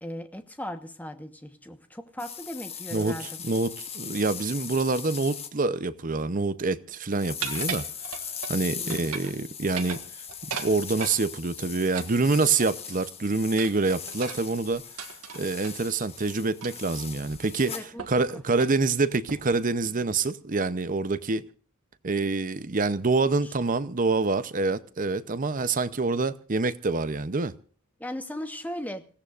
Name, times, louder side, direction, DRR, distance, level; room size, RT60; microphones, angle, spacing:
voice 1, 0.0-3.3 8.8-9.1 17.6-18.4 23.4-23.5 28.0-29.1, left 1 dB, 5° left, 1.2 m, -38 dB
sound 1, 2.2-5.5 7.1-17.9, left 7 dB, 25° left, 1.4 m, -39 dB
voice 2, 2.9-7.9 8.5-10.0 10.4-14.8 15.3-17.8 18.1-21.4 22.0-27.5, right 3 dB, 35° right, 0.7 m, -26 dB
sound 2, 7.4-8.6 8.9-9.4 9.7-11.2 11.9-13.0 13.6-15.8 16.6-16.9 17.3-17.4 18.0-18.2 18.5-18.8 19.3-19.6, right 7 dB, 80° right, 1.7 m, -37 dB
28.0 x 16.5 x 2.5 m
head